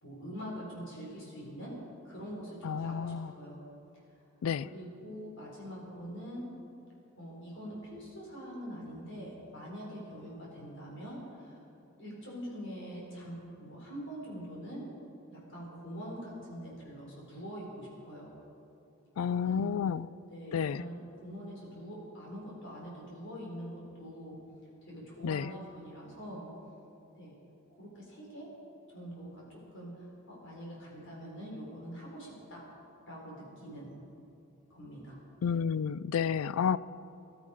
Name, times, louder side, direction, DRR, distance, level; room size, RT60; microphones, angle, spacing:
voice 1, 0.0-1.8 2.0-3.6 4.1-4.2 4.6-6.5 7.2-11.6 12.0-14.8 15.3-18.3 19.3-19.7 20.3-24.4 24.8-26.5 27.1-27.4 27.7-28.5 28.9-32.6 33.1-33.9 34.7-35.2, equal, 60° left, -4 dB, 4.1 m, -44 dB
voice 2, 2.6-3.3 4.4-4.7 19.2-20.1 20.5-20.8 25.2-25.5 35.4-36.8, left 7 dB, 80° left, 19 dB, 0.4 m, -30 dB
18.5 x 12.5 x 4.9 m, 2.9 s
head